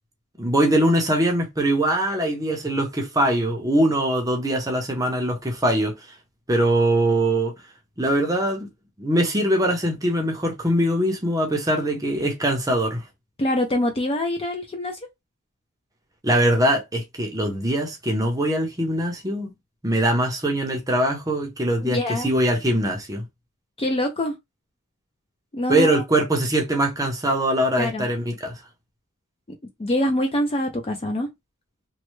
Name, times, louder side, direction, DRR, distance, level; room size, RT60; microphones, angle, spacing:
voice 1, 0.4-6.0 6.5-7.5 8.0-8.7 9.0-13.0 16.2-19.5 19.8-23.2 25.7-28.5, right 1 dB, 15° right, 0.6 m, -22 dB
voice 2, 13.4-15.0 21.8-22.3 23.8-24.3 25.5-26.0 27.8-28.1 29.8-31.3, left 1 dB, 25° left, 0.4 m, -24 dB
3.1 x 2.1 x 3.0 m
head